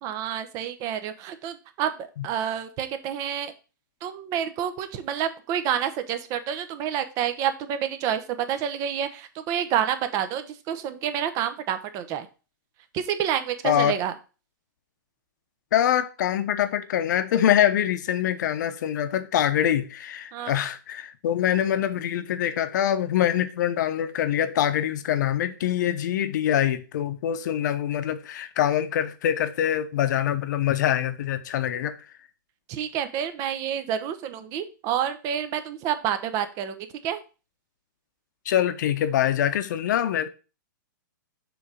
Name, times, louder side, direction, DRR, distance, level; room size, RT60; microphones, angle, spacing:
voice 1, 0.0-3.5 4.0-12.3 12.9-14.1 20.3-20.5 32.7-37.2, right 9 dB, 30° right, 0.8 m, -28 dB
voice 2, 13.6-14.0 15.7-31.9 38.4-40.3, left 10 dB, 60° left, 0.9 m, -24 dB
7.0 x 3.4 x 5.0 m
hypercardioid pair, 140°, 11 cm